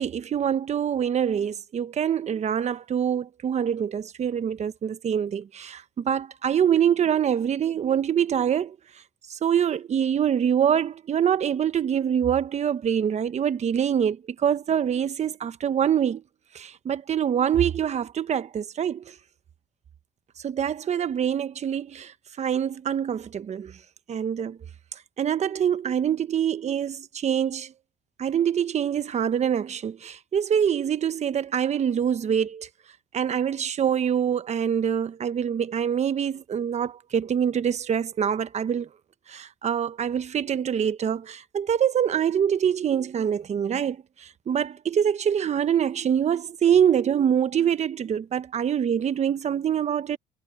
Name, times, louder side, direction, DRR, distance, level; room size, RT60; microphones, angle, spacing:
voice 1, 0.0-8.8 9.3-16.2 16.5-19.1 20.4-23.8 24.1-24.6 24.9-27.7 28.2-32.7 33.1-38.9 39.3-50.2, right 8 dB, 40° right, 1.1 m, -25 dB
cardioid pair, 110°, 17 cm